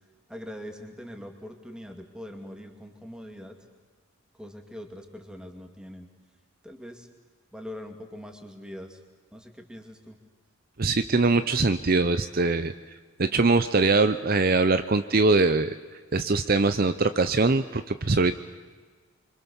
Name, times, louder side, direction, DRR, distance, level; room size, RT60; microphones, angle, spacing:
voice 1, 0.3-3.5 4.4-6.1 6.6-7.1 7.5-9.0 9.3-10.2, equal, 5° right, 4 dB, 2.4 m, -42 dB
voice 2, 10.8-12.7 13.2-15.7 16.1-18.4, right 3 dB, 45° right, 10 dB, 0.7 m, -22 dB
26.0 x 25.0 x 7.1 m, 1.5 s
head